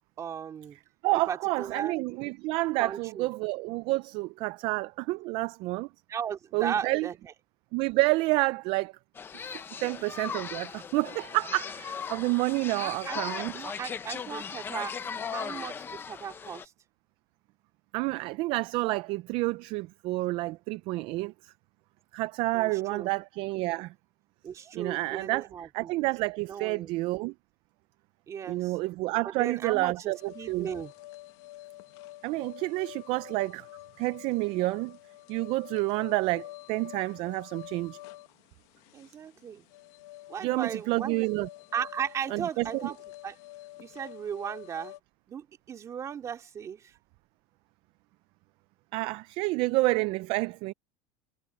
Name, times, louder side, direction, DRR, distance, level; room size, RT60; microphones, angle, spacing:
voice 1, 0.2-0.8 1.3-1.9 2.8-3.3 6.1-7.3 12.8-15.0 15.2-16.7 22.5-23.1 24.4-25.9 26.5-26.9 28.3-28.8 29.2-30.9 38.9-39.6 40.3-41.2 41.7-43.0 43.2-43.4 43.8-45.0 45.3-46.9, right 8 dB, 20° right, 2.6 m, -36 dB
voice 2, 1.0-5.9 6.5-7.1 7.7-8.9 9.8-13.5 17.9-21.5 22.1-23.9 24.7-25.5 25.7-27.3 28.5-30.7 32.2-33.7 34.0-35.0 35.3-38.0 40.4-41.5 42.3-42.9 48.9-50.7, right 22 dB, 40° right, 0.3 m, -29 dB
sound 1, 9.2-16.7, left 6 dB, 15° left, 0.7 m, -38 dB
sound 2, 30.1-45.0, left 17 dB, 50° left, 1.4 m, -48 dB
cardioid pair, 170°, 14 cm